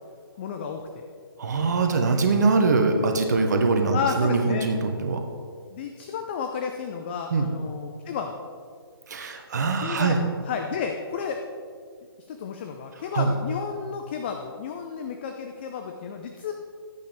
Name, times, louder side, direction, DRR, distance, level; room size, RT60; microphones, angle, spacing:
voice 1, 0.4-1.0 3.9-4.7 5.7-8.4 9.7-11.4 12.3-16.5, left 6 dB, 25° left, 4 dB, 0.5 m, -32 dB
voice 2, 1.4-5.2 7.3-7.5 9.1-10.2 13.1-13.3, right 4 dB, 45° right, 4 dB, 1.0 m, -23 dB
12.5 x 8.6 x 3.4 m, 2.1 s
figure-of-eight pair, 140°, 13 cm